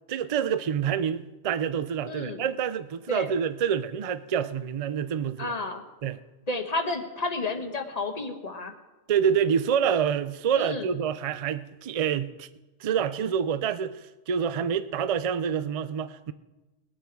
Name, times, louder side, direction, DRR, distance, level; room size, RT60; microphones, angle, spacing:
voice 1, 0.1-5.5 6.0-6.2 9.1-12.5 12.8-16.3, right 8 dB, 50° right, 0.4 m, -27 dB
voice 2, 2.1-2.4 3.1-3.3 5.4-5.8 6.5-8.7 10.5-10.9, left 3 dB, 35° left, 1.3 m, -31 dB
21.5 x 8.6 x 4.6 m
omnidirectional pair, 1.3 m